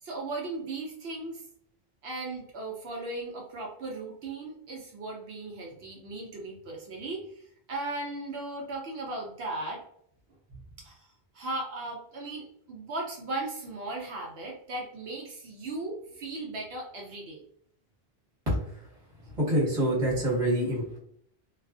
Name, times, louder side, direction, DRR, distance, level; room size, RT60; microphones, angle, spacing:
voice 1, 0.0-1.4 2.0-7.4 7.7-9.8 10.8-11.1 11.3-17.4, right 2 dB, 80° right, -1 dB, 0.8 m, -37 dB
voice 2, 18.5-18.9 19.3-21.0, equal, 35° right, -5 dB, 1.2 m, -27 dB
2.4 x 2.4 x 2.3 m, 0.68 s
omnidirectional pair, 1.0 m